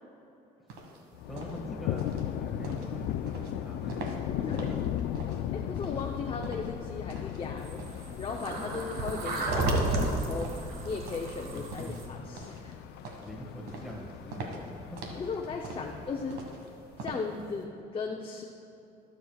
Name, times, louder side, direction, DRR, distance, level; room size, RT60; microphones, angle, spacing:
sound 1, 0.7-17.6, right 2 dB, 85° right, 1.6 m, -44 dB
Thunder, 1.1-17.1, left 11 dB, 80° left, 0.4 m, -37 dB
voice 1, 1.3-4.5 5.9-6.0 11.4-12.0 13.2-15.2 15.8-16.2, equal, ahead, -3 dB, 1.7 m, -43 dB
voice 2, 5.5-7.8 8.2-12.8 15.2-16.4 17.0-18.4, left 4 dB, 30° left, 1 dB, 0.7 m, -37 dB
sound 2, 7.6-12.0, right 2 dB, 65° right, 1.5 m, -32 dB
21.5 x 7.4 x 2.4 m, 2.9 s
cardioid pair, 110°, 17 cm